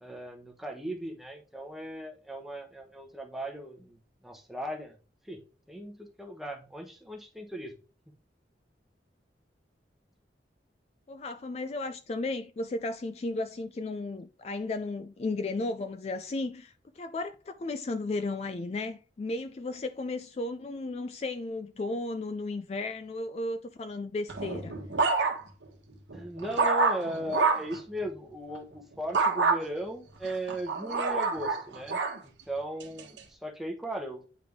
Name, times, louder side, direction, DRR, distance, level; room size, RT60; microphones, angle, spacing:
voice 1, 0.0-4.0 4.2-5.0 5.3-5.4 5.7-7.7 26.1-34.2, right 1 dB, ahead, 1.0 m, -37 dB
voice 2, 11.1-24.7, left 2 dB, 35° left, 0.3 m, -34 dB
sound 1, 24.3-25.6 26.1-27.8 29.1-29.6 30.2-32.2 32.8-33.2, right 4 dB, 90° right, 1.2 m, -27 dB
9.3 x 3.4 x 3.5 m
head